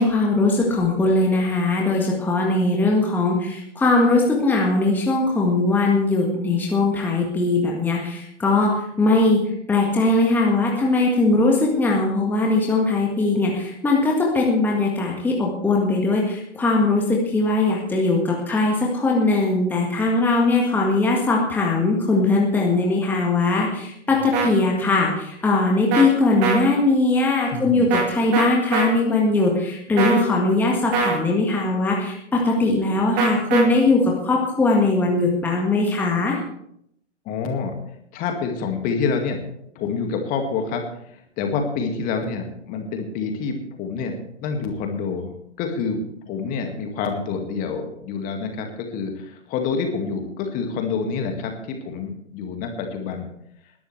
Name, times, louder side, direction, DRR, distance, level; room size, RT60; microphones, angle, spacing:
voice 1, 0.0-8.7 9.0-9.4 9.7-36.4, left 2 dB, 5° left, -2 dB, 1.7 m, -20 dB
voice 2, 24.1-24.5 27.5-28.1 37.3-37.7 38.1-39.4 39.8-44.1 44.4-53.3, left 5 dB, 25° left, 4 dB, 2.0 m, -27 dB
sound 1, 24.3-24.5 25.9-26.1 26.4-26.6 27.9-28.1 28.3-28.9 30.0-30.3 30.9-31.2 33.2-33.6, right 5 dB, 30° right, 2.4 m, -22 dB
20.5 x 12.0 x 3.3 m, 0.73 s
figure-of-eight pair, 120°, 36 cm